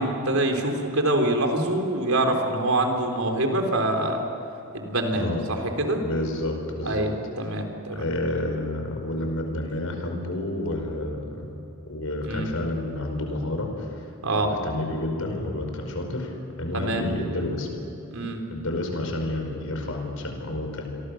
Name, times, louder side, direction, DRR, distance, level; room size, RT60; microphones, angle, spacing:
voice 1, 0.0-4.3 4.7-6.0 6.8-8.0 12.2-12.5 14.2-14.5 16.7-17.1 18.1-18.4, right 1 dB, 80° right, 4 dB, 3.8 m, -25 dB
voice 2, 5.1-5.4 6.0-7.1 7.9-11.5 11.9-13.9 14.4-17.8 18.5-21.0, left 1 dB, 75° left, 3 dB, 5.2 m, -30 dB
28.5 x 23.5 x 6.5 m, 3.0 s
head